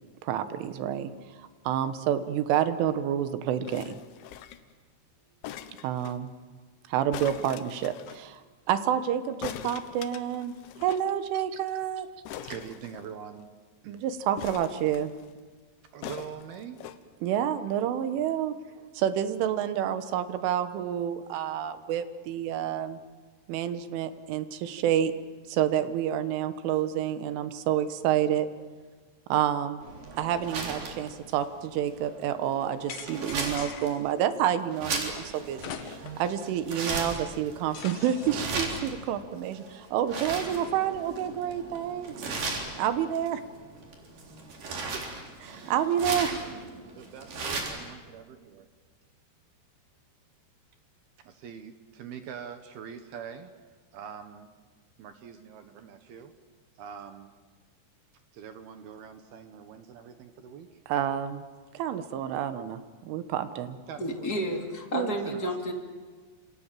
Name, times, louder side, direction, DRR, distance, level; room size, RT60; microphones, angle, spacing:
voice 1, 0.2-4.0 5.8-6.3 6.9-10.5 10.8-12.1 13.9-15.1 17.2-18.6 18.9-23.0 23.5-25.1 25.5-28.5 29.3-29.8 30.1-42.3 42.8-43.4 44.8-45.0 45.4-46.4 60.9-61.5 61.8-63.8 64.9-65.1, right 10 dB, 85° right, 11 dB, 3.8 m, -29 dB
sound 1, 3.7-4.7 5.4-6.2 7.1-8.2 9.4-11.1 11.4-11.5 11.7-11.8 12.3-13.4 14.4-15.3 16.0-17.0 17.7-17.8, left 11 dB, 80° left, 3.4 m, -42 dB
voice 2, 12.4-13.5 13.8-14.0 15.9-16.8 46.9-48.7 51.3-53.5 53.9-54.5 55.0-56.3 56.8-57.3 58.3-60.8 63.9-64.3 65.1-65.6, right 7 dB, 65° right, 7 dB, 2.8 m, -43 dB
sound 2, 29.8-47.9, right 3 dB, 45° right, 5.0 m, -37 dB
sound 3, 32.9-34.1 35.6-36.3 36.7-36.8 37.7-38.6, left 8 dB, 60° left, 2.8 m, -42 dB
voice 3, 64.0-65.7, equal, 25° left, 1 dB, 2.9 m, -31 dB
28.5 x 27.5 x 7.6 m, 1.4 s
omnidirectional pair, 5.5 m